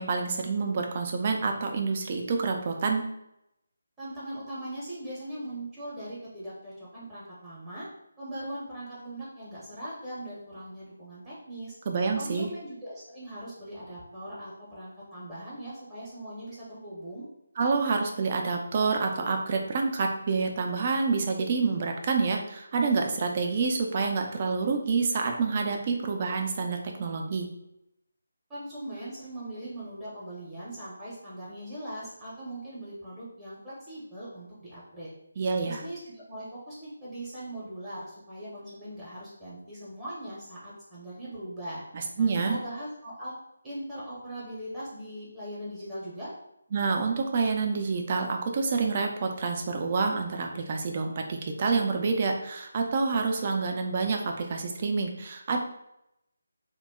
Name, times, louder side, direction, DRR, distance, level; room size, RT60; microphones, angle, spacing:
voice 1, 0.0-3.0 11.9-12.5 17.6-27.5 35.4-35.8 41.9-42.6 46.7-55.6, right 4 dB, 35° right, 3 dB, 0.4 m, -28 dB
voice 2, 4.0-7.9 8.2-11.8 12.2-17.2 28.5-35.1 35.6-41.8 42.2-43.3 43.6-46.3, right 1 dB, 10° right, -9 dB, 0.7 m, -40 dB
2.2 x 2.0 x 3.5 m, 0.82 s
figure-of-eight pair, 160°, 0 cm